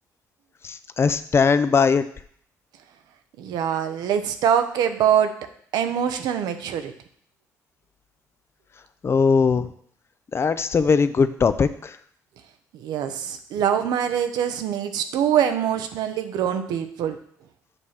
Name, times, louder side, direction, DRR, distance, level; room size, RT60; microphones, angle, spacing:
voice 1, 0.6-2.0 9.0-9.7 10.3-12.0, left 5 dB, 40° left, 13 dB, 0.5 m, -20 dB
voice 2, 3.4-5.3 5.7-6.9 12.7-17.2, right 9 dB, 80° right, 8 dB, 0.7 m, -24 dB
7.9 x 3.2 x 5.7 m, 0.63 s
supercardioid pair, 75°, 7 cm